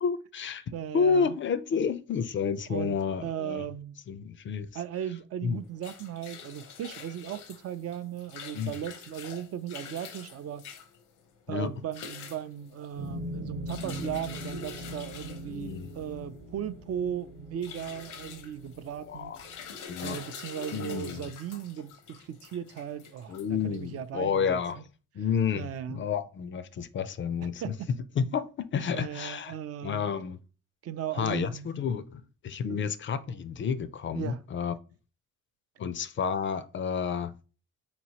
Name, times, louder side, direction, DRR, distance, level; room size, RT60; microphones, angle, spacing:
voice 1, 0.0-0.6 0.9-3.7 4.1-4.7 5.4-5.6 8.5-8.7 11.5-11.7 15.5-15.9 19.0-19.4 19.9-20.2 20.7-21.3 23.3-24.8 25.1-27.7 28.2-29.5 29.8-30.4 31.2-34.7 35.8-37.3, left 6 dB, 40° left, 0.4 m, -30 dB
voice 2, 0.7-1.3 2.7-4.0 4.7-10.7 11.5-19.3 20.0-24.8 25.5-26.0 27.6-27.9 28.9-30.0 30.8-31.8 32.7-32.8 34.1-34.4, right 9 dB, 55° right, 0.4 m, -37 dB
sound 1, 5.5-24.1, left 7 dB, 85° left, 0.7 m, -46 dB
sound 2, 13.0-19.5, equal, 70° right, 1.0 m, -41 dB
4.1 x 2.9 x 2.8 m
cardioid pair, 90°, 30 cm